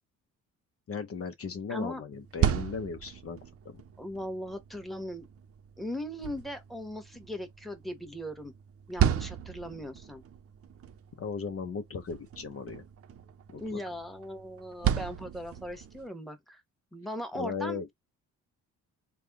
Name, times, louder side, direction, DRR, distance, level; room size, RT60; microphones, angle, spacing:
voice 1, 0.9-3.4 3.6-3.8 11.2-12.8 13.5-13.8 17.3-17.9, left 5 dB, 50° left, 0.8 m, -37 dB
voice 2, 1.7-2.0 4.0-5.3 5.8-8.5 8.9-10.2 13.5-16.6 16.9-17.9, equal, ahead, 1.2 m, -38 dB
sound 1, 2.1-16.1, right 10 dB, 50° right, 0.6 m, -35 dB
3.4 x 2.2 x 3.5 m
cardioid pair, 90°, 30 cm